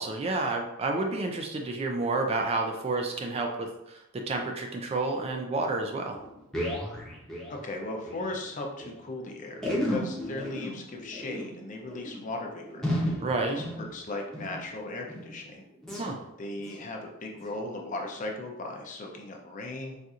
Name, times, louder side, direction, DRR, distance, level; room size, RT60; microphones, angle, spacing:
voice 1, 0.0-6.2 13.2-13.6 16.0-16.2, right 3 dB, 30° right, 3 dB, 0.3 m, -30 dB
sound 1, 6.1-8.3 8.5-8.6 8.8-8.9 9.5-14.6 15.0-15.4 15.8-16.1 16.6-16.8 17.3-17.5 18.1-18.2, equal, ahead, 0.7 m, -34 dB
voice 2, 7.5-13.2 13.5-15.6 16.4-20.0, left 2 dB, 40° left, 1 dB, 0.5 m, -37 dB
4.1 x 2.5 x 2.4 m, 0.89 s
head